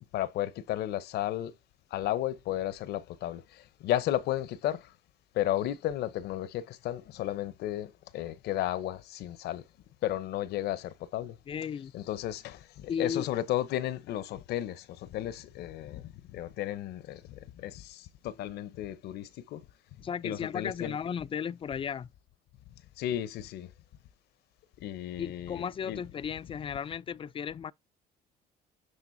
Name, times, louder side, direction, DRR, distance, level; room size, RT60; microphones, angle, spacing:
voice 1, 0.1-1.5 1.9-4.9 5.3-9.6 10.0-11.4 11.9-19.6 20.2-21.0 23.0-23.7 24.8-26.0, left 13 dB, 75° left, 0.8 m, -33 dB
voice 2, 11.5-11.9 12.9-13.3 20.0-22.1 25.2-27.7, left 7 dB, 30° left, 0.4 m, -35 dB
9.6 x 3.8 x 2.7 m
cardioid pair, 110°, 17 cm